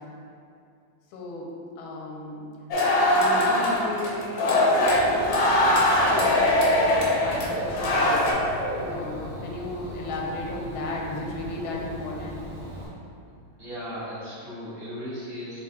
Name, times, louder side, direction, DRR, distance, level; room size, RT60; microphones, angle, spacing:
voice 1, 1.1-1.5 1.8-2.5 3.1-4.9 6.1-8.6 8.9-12.5, left 2 dB, 90° left, -2 dB, 1.4 m, -35 dB
sound 1, 2.7-8.3, left 1 dB, 65° left, 0.8 m, -21 dB
Dog / Bird, 4.9-12.9, right 1 dB, 75° right, 2.2 m, -36 dB
voice 2, 13.6-15.6, equal, 40° right, -12 dB, 1.4 m, -36 dB
5.5 x 2.3 x 3.6 m, 2.5 s
omnidirectional pair, 2.2 m